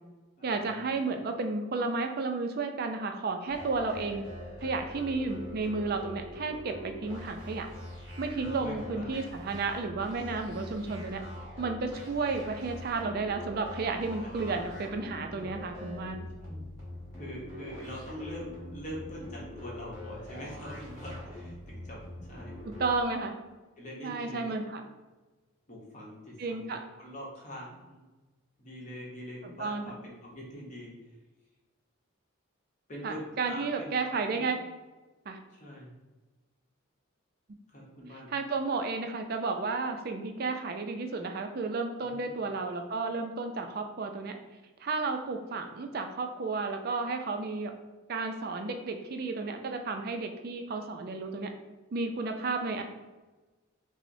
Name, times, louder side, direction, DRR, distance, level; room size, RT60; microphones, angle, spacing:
voice 1, 0.4-4.2 4.6-7.7 8.2-11.2 11.6-16.3 22.6-23.3 24.0-24.8 26.4-26.8 29.4-30.0 33.0-34.6 35.3-35.4 37.5-37.6 38.1-44.4 44.8-47.7 48.1-51.5 51.9-52.8, right 3 dB, 45° right, 5 dB, 0.3 m, -32 dB
sound 1, 3.5-23.0, left 1 dB, 15° right, 1.4 m, -44 dB
voice 2, 8.4-9.1 14.2-14.4 15.3-15.5 16.4-16.6 17.1-22.0 22.3-22.6 23.8-24.5 25.7-28.1 28.6-30.9 32.9-33.2 33.5-34.5 35.5-35.9 37.7-38.3 42.0-42.3, equal, 35° left, -4 dB, 0.8 m, -44 dB
5.6 x 2.0 x 2.6 m, 1.2 s
head